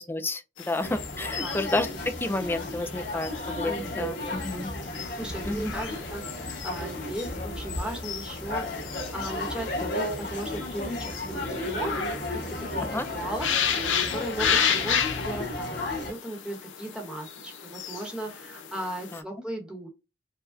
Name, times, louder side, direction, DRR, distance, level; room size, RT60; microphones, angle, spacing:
voice 1, 0.0-1.9 2.2-4.7 5.5-5.7 12.9-13.1 19.1-19.2, left 2 dB, 10° left, 0.4 m, -30 dB
sound 1, 0.6-19.2, left 8 dB, 80° left, 0.6 m, -34 dB
sound 2, 0.8-16.1, left 1 dB, 65° left, 1.9 m, -34 dB
voice 2, 3.6-4.1 5.1-12.0 12.3-19.9, right 1 dB, 5° right, 0.9 m, -37 dB
4.7 x 2.1 x 2.5 m
head